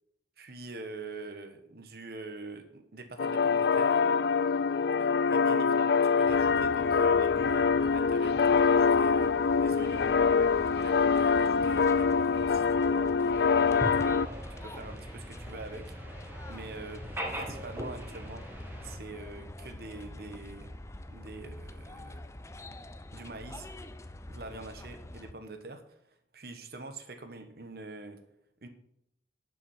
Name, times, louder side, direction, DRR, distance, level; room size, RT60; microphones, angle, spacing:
voice 1, 0.4-4.0 5.0-10.2 10.8-14.2 14.6-15.8 16.5-18.4 18.8-20.7 21.1-22.2 23.1-23.7 24.3-26.0 26.3-28.2 28.6-28.7, right 2 dB, 60° right, 7 dB, 1.2 m, -44 dB
sound 1, 3.2-14.3, left 5 dB, 65° left, 0.4 m, -25 dB
sound 2, 6.3-25.3, left 1 dB, 15° left, 0.5 m, -45 dB
sound 3, 13.3-19.0, right 1 dB, 10° right, 1.6 m, -41 dB
11.0 x 6.1 x 7.2 m, 0.76 s
head